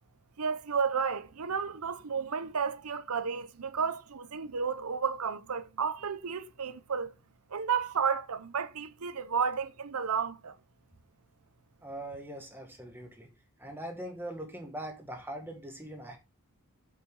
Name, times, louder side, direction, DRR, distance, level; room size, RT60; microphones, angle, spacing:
voice 1, 0.4-7.1 7.5-10.5, right 6 dB, 80° right, 0.8 m, -32 dB
voice 2, 11.8-13.3 13.6-16.2, right 1 dB, 10° right, 1.8 m, -41 dB
7.7 x 6.5 x 3.8 m
head